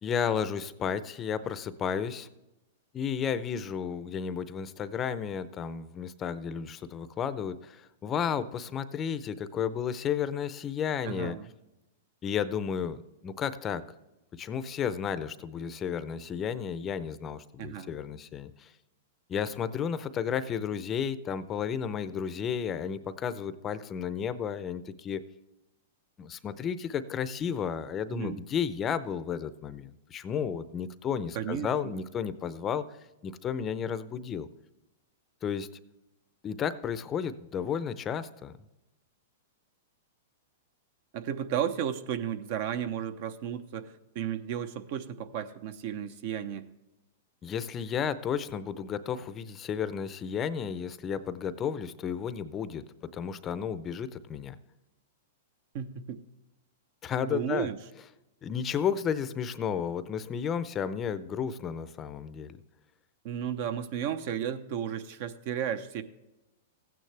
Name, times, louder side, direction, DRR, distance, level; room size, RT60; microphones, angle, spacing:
voice 1, 0.0-2.3 2.9-11.4 12.2-13.8 14.3-18.7 19.3-25.2 26.2-32.8 33.2-34.5 35.4-35.7 36.4-38.5 47.4-52.8 53.1-54.6 57.0-57.7 58.4-62.6, left 7 dB, 25° left, 13 dB, 0.6 m, -32 dB
voice 2, 11.0-11.5 17.6-17.9 28.1-28.4 31.3-32.0 41.1-46.7 55.7-56.2 57.2-57.8 63.2-66.0, right 9 dB, 55° right, 12 dB, 0.8 m, -34 dB
15.0 x 9.2 x 3.3 m, 0.97 s
hypercardioid pair, 135°, 0 cm